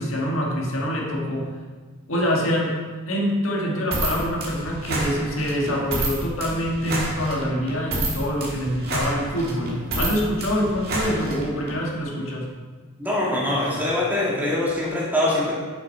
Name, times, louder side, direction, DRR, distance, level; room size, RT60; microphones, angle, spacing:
voice 1, 0.0-1.6 2.1-2.8 3.1-12.5, equal, 65° left, -2 dB, 1.6 m, -25 dB
sound 1, 3.9-11.8, right 1 dB, 45° right, 1.7 m, -29 dB
voice 2, 13.0-15.5, left 1 dB, 10° right, -7 dB, 2.0 m, -23 dB
7.1 x 6.2 x 4.5 m, 1.4 s
head